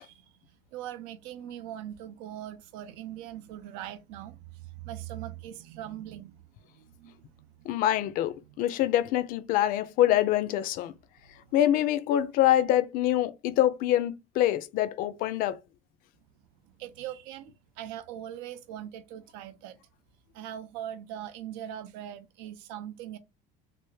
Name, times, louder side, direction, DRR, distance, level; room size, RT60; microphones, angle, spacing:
voice 1, 0.0-7.8 8.4-8.8 11.2-11.5 16.6-19.8 20.3-23.2, right 11 dB, 85° right, 0.6 m, -41 dB
voice 2, 7.7-10.9 11.5-15.6, left 12 dB, 45° left, 0.4 m, -25 dB
3.3 x 2.4 x 3.1 m
cardioid pair, 175°, 21 cm